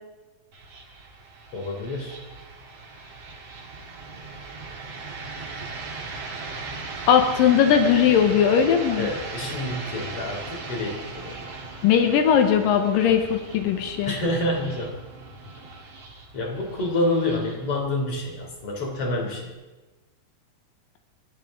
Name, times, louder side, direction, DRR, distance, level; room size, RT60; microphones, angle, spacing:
sound 1, 0.5-19.5, right 3 dB, 50° right, 2.9 m, -38 dB
voice 1, 1.5-2.2 9.0-11.4 14.1-14.9 16.3-19.5, left 1 dB, 45° left, 0 dB, 4.1 m, -28 dB
voice 2, 7.1-9.1 11.8-14.1, left 8 dB, 90° left, 5 dB, 2.8 m, -19 dB
29.5 x 12.5 x 3.8 m, 1.2 s
omnidirectional pair, 3.9 m